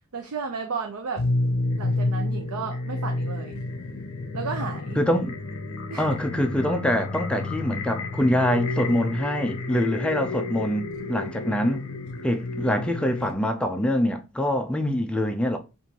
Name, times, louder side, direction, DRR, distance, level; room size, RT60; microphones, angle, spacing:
voice 1, 0.1-1.2 1.8-3.6 4.3-5.0 5.9-6.1 9.8-10.3, right 5 dB, 70° right, 0.5 m, -33 dB
sound 1, 1.2-13.3, left 2 dB, 60° left, 0.7 m, -30 dB
voice 2, 5.0-5.3 6.0-11.8 12.2-15.6, left 1 dB, 5° left, 0.4 m, -25 dB
4.5 x 2.6 x 2.8 m
head